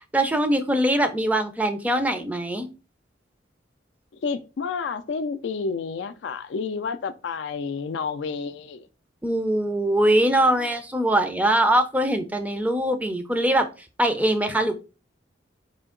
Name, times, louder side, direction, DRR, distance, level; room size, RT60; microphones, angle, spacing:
voice 1, 0.1-2.7 9.2-13.7 14.0-14.7, right 1 dB, 10° right, 0.5 m, -22 dB
voice 2, 4.2-8.9, left 5 dB, 65° left, 0.4 m, -30 dB
4.4 x 2.8 x 3.7 m
head